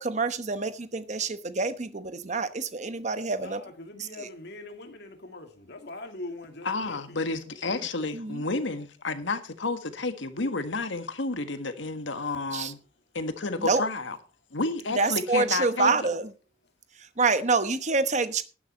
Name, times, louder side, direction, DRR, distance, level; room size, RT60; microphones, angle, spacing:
voice 1, 0.0-3.6 4.0-4.3 8.1-8.4 12.5-12.7 13.6-13.8 15.0-16.3 17.0-18.4, right 4 dB, 35° right, 1.0 m, -27 dB
voice 2, 3.4-7.3, left 2 dB, 55° left, 2.1 m, -42 dB
voice 3, 6.7-12.8 13.1-14.2 14.5-15.9, left 3 dB, 70° left, 1.6 m, -31 dB
12.0 x 10.0 x 4.4 m
head